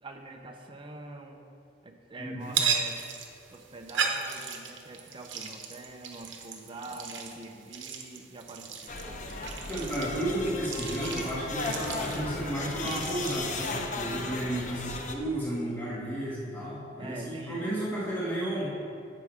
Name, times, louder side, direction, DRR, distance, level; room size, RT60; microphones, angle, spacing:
voice 1, 0.0-1.4 1.8-3.1 3.5-9.2 14.4-14.9 16.9-17.7, right 2 dB, 25° right, 3 dB, 0.7 m, -44 dB
voice 2, 2.2-2.5 9.7-18.7, right 1 dB, 10° left, -9 dB, 2.2 m, -33 dB
sound 1, 2.4-13.4, right 6 dB, 85° right, 1.0 m, -36 dB
sound 2, 8.9-15.2, left 3 dB, 45° left, 0.7 m, -36 dB
11.0 x 7.9 x 3.6 m, 2.5 s
head